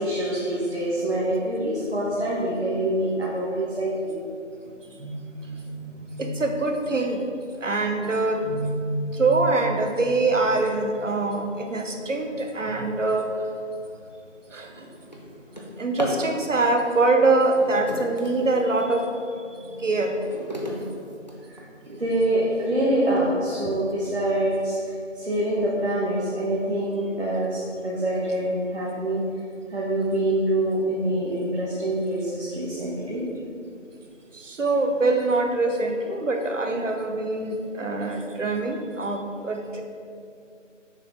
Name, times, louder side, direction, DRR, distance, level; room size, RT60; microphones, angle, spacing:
voice 1, 0.0-4.2 4.9-6.5 8.4-9.5 19.5-19.8 20.5-20.9 21.5-29.2 29.7-33.2, right 1 dB, 55° right, -6 dB, 1.3 m, -26 dB
voice 2, 6.2-7.2 7.6-8.5 9.1-13.3 14.5-14.9 15.8-19.1 19.8-20.2 34.3-39.8, right 3 dB, 75° right, 4 dB, 0.9 m, -24 dB
Drawer open or close, 13.6-13.8 14.3-16.3 17.4-19.0 19.5-21.9 22.6-22.7 23.2-23.3 23.6-24.0, equal, 35° left, 0.6 m, -37 dB
6.6 x 4.9 x 4.0 m, 2.4 s
figure-of-eight pair, 175°, 38 cm